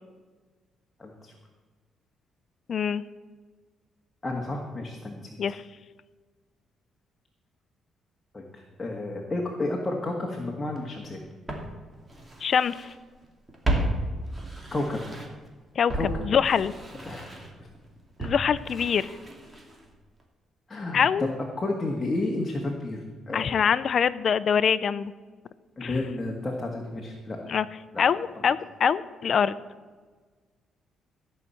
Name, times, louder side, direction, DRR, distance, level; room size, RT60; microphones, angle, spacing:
voice 1, 1.0-1.3 4.2-5.4 8.3-11.2 14.7-15.0 15.9-16.2 17.0-17.7 20.7-21.0 21.6-23.4 25.8-27.4 27.9-28.0, left 2 dB, 20° left, 0 dB, 1.8 m, -31 dB
voice 2, 2.7-3.0 5.4-5.6 12.4-12.9 15.8-15.9 16.2-16.7 18.2-19.2 20.9-21.3 23.3-25.1 25.8-26.0 27.4-27.7 28.0-29.5, left 7 dB, 55° left, 16 dB, 0.6 m, -24 dB
Walk footsteps, 10.8-10.9 11.5-13.0 13.2-15.5 15.9-19.9 20.2-20.3, right 1 dB, 20° right, 2.5 m, -33 dB
15.0 x 5.8 x 8.5 m, 1.4 s
cardioid pair, 90°, 0 cm